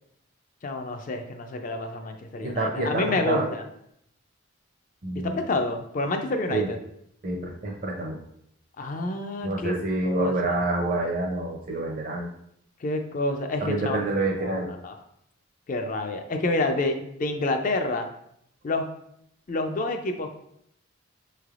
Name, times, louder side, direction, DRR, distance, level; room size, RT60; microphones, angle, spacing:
voice 1, 0.6-3.6 5.1-6.8 8.8-9.7 10.0-10.6 12.8-14.0 14.4-15.0 15.7-18.1 18.6-18.9 19.5-20.3, left 2 dB, 35° left, 6 dB, 0.3 m, -28 dB
voice 2, 2.4-3.5 5.0-5.4 6.5-6.7 7.2-8.2 9.4-12.3 13.6-14.7, right 2 dB, 40° right, -1 dB, 0.5 m, -27 dB
5.2 x 3.2 x 2.4 m, 0.74 s
head